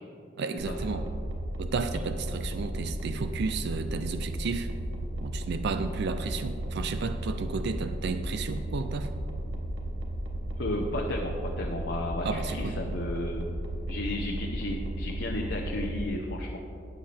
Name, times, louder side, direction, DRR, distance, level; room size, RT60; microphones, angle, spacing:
voice 1, 0.4-1.1 1.6-4.7 5.2-9.1 12.2-12.8, right 4 dB, 60° right, 9 dB, 0.4 m, -32 dB
sound 1, 0.6-16.0, right 1 dB, 80° right, 1.4 m, -34 dB
voice 2, 10.6-13.4 13.9-16.6, left 1 dB, 65° left, -1 dB, 0.9 m, -33 dB
13.0 x 8.9 x 3.4 m, 2.6 s
head